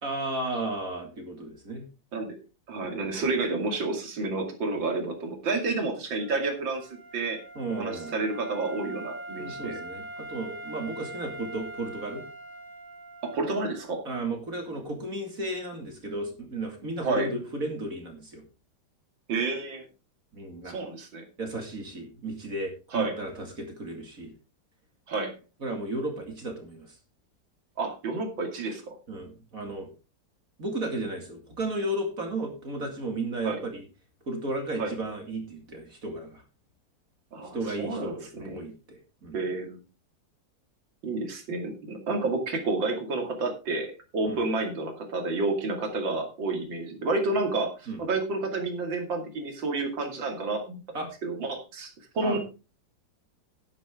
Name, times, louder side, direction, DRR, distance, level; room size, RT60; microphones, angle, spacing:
voice 1, 0.0-1.9 2.8-3.3 7.6-8.1 9.4-12.2 14.0-18.4 20.3-20.8 21.4-24.3 25.6-27.0 29.1-29.9 30.6-33.9 34.3-36.4 37.5-39.4 44.3-44.4 47.9-48.0 50.9-51.1 52.2-52.4, right 2 dB, 45° right, 4 dB, 2.6 m, -34 dB
voice 2, 2.7-7.4 7.8-9.8 13.2-14.0 17.0-17.3 19.3-19.9 20.7-21.3 22.9-23.2 25.1-25.3 27.8-29.0 33.4-33.6 34.8-34.9 37.3-38.6 39.3-39.8 41.0-43.9 44.1-50.8 51.2-52.4, right 3 dB, 75° right, 4 dB, 3.1 m, -30 dB
Wind instrument woodwind instrument, 6.1-13.9, right 2 dB, 55° left, 4.9 m, -42 dB
11.0 x 11.0 x 3.6 m, 0.30 s
omnidirectional pair, 2.1 m